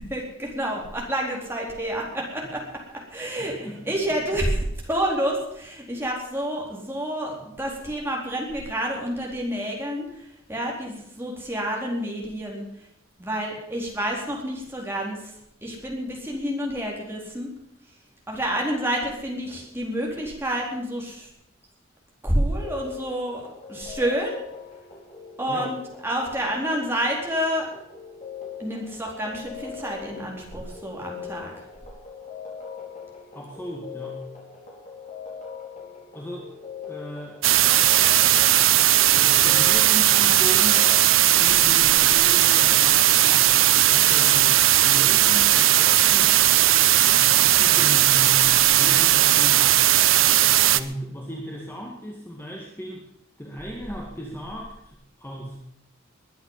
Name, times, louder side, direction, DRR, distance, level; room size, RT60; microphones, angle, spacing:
voice 1, 0.1-2.6 2.9-3.6 3.9-4.6 4.8-12.7 13.2-15.3 15.6-17.5 18.3-21.3 22.2-24.4 25.4-25.8 26.0-27.7 28.6-31.7, right 1 dB, 10° right, -2 dB, 4.2 m, -29 dB
voice 2, 3.4-4.0 25.5-25.8 33.3-34.3 36.1-36.6 36.9-37.4 39.1-40.9 41.4-46.4 47.0-49.8 50.7-53.1 53.4-55.6, equal, 10° left, -1 dB, 2.1 m, -36 dB
sound 1, 22.6-41.0, left 6 dB, 35° left, 5.1 m, -41 dB
sound 2, 37.4-50.8, right 13 dB, 75° right, 0.7 m, -17 dB
21.0 x 10.0 x 5.7 m, 0.81 s
head